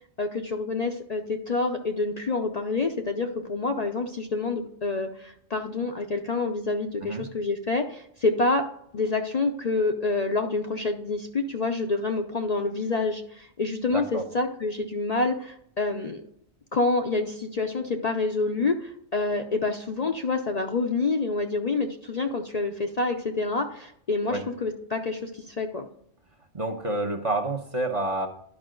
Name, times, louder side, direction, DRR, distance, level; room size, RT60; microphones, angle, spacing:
voice 1, 0.2-8.6 8.9-16.2 16.7-25.9, left 3 dB, 45° left, 4 dB, 0.6 m, -27 dB
voice 2, 13.9-14.2 24.3-24.4 26.5-28.3, right 2 dB, 30° right, 2 dB, 0.9 m, -28 dB
11.0 x 5.5 x 3.8 m, 0.69 s
omnidirectional pair, 1.2 m